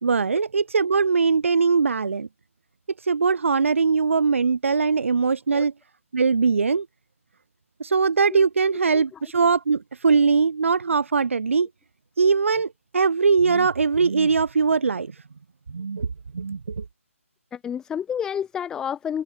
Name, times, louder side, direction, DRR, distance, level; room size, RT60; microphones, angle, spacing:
voice 1, 0.0-2.3 3.0-5.7 6.1-6.9 7.8-11.7 12.2-15.1 15.7-16.1 16.3-16.8, right 5 dB, 65° right, 2.5 m, -21 dB
voice 2, 17.5-19.2, left 8 dB, 10° left, 1.8 m, -29 dB
figure-of-eight pair, 155°, 8 cm